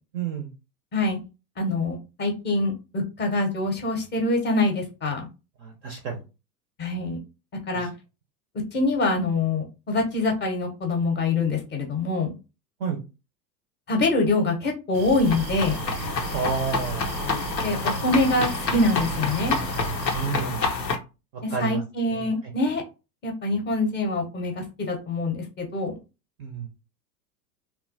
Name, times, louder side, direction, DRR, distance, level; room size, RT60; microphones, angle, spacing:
voice 1, 0.1-0.5 5.6-6.2 12.8-13.0 16.3-17.0 20.1-20.7 21.5-21.8 22.1-22.3 26.4-26.7, right 5 dB, 25° right, 3 dB, 0.4 m, -29 dB
voice 2, 1.6-5.3 6.8-7.2 7.7-7.9 8.7-12.3 13.9-15.8 17.6-19.6 21.4-22.8 23.2-25.9, left 2 dB, 20° left, 2 dB, 0.7 m, -25 dB
sound 1, 14.9-20.3, right 8 dB, 85° right, 0.6 m, -36 dB
sound 2, 15.2-21.0, left 4 dB, 90° left, 0.6 m, -28 dB
2.8 x 2.2 x 2.6 m, 0.29 s
figure-of-eight pair, 85°, 49 cm